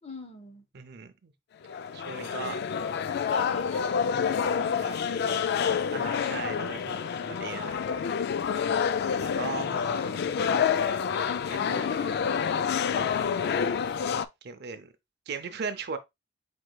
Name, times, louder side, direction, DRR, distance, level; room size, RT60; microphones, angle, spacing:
voice 1, 0.0-0.7 3.0-4.0 4.3-5.5 9.6-10.9, left 2 dB, 30° left, 0.9 m, -43 dB
voice 2, 0.7-1.3 1.9-2.6 4.8-4.9 5.9-7.8 9.2-10.0 11.5-12.3 14.4-14.9 15.3-16.0, right 5 dB, 55° right, 0.5 m, -38 dB
sound 1, 1.6-14.2, left 7 dB, 50° left, 0.3 m, -28 dB
4.7 x 4.4 x 2.2 m
head